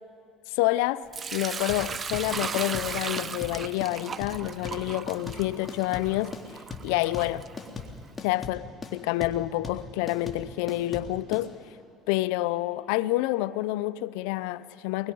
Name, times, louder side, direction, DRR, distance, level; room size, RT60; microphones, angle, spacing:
voice 1, 0.5-1.1 1.3-6.4 6.8-7.4 8.2-8.6 8.9-11.5 12.1-15.1, left 17 dB, 85° left, 0.4 m, -28 dB
Sink (filling or washing) / Liquid, 1.1-8.1, right 6 dB, 35° right, 0.6 m, -37 dB
sound 1, 1.7-11.5, left 4 dB, 30° left, 2.3 m, -39 dB
23.0 x 21.0 x 5.4 m
supercardioid pair, 90°, 0 cm